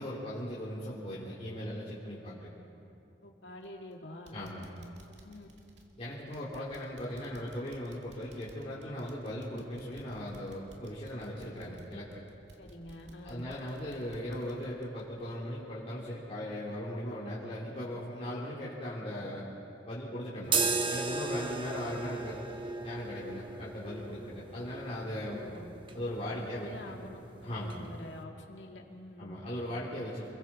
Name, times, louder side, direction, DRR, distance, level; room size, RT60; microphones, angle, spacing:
voice 1, 0.0-2.5 4.3-4.7 6.0-12.1 13.2-19.5 19.9-20.6 20.9-22.4 22.8-25.4 25.9-26.9 27.4-27.8 29.2-30.4, equal, 35° left, -8 dB, 3.2 m, -38 dB
voice 2, 3.2-4.4 5.2-5.5 12.6-13.5 25.2-25.7 26.2-29.4, left 1 dB, 80° left, 1 dB, 2.3 m, -47 dB
sound 1, 3.6-3.9 4.3-15.8 16.2-16.3 16.8-16.9, right 1 dB, 70° right, 2.2 m, -58 dB
sound 2, 20.4-28.2, right 4 dB, 30° right, 1.1 m, -36 dB
29.0 x 21.5 x 4.4 m, 2.8 s
head